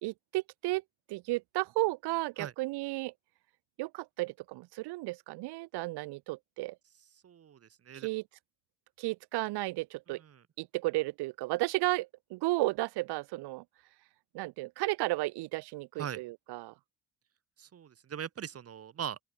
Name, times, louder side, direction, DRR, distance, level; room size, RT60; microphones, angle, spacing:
voice 1, 0.0-0.8 1.1-3.1 3.8-6.8 7.9-8.2 9.0-10.2 10.6-13.6 14.3-16.7, right 21 dB, 75° right, 0.6 m, -33 dB
voice 2, 7.2-8.1 16.0-16.2 17.6-19.2, right 8 dB, 35° right, 0.8 m, -40 dB
open air
supercardioid pair, 80°, 40 cm